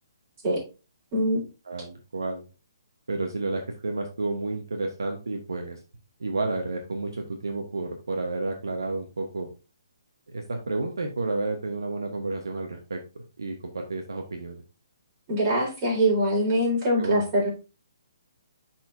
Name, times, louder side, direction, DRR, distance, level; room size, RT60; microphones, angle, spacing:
voice 1, 1.1-1.4 15.3-17.5, right 1 dB, 30° right, -4 dB, 3.9 m, -23 dB
voice 2, 1.7-2.4 3.1-5.8 6.2-9.5 10.3-13.0 13.4-14.6 17.0-17.2, right 2 dB, 75° right, 3 dB, 1.0 m, -31 dB
10.5 x 4.3 x 2.6 m, 0.32 s
figure-of-eight pair, 135°, 2 cm